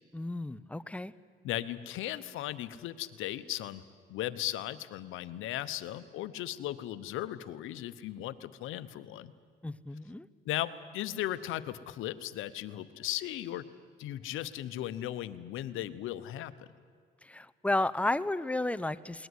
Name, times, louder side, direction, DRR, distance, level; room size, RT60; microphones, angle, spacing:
voice 1, 0.1-1.1 9.6-10.3 17.2-19.3, left 2 dB, 5° left, 13 dB, 0.7 m, -32 dB
voice 2, 1.4-3.8 4.1-9.3 10.5-13.7 14.0-16.7, left 13 dB, 90° left, 13 dB, 0.9 m, -37 dB
21.0 x 19.0 x 9.7 m, 2.1 s
cardioid pair, 90°, 20 cm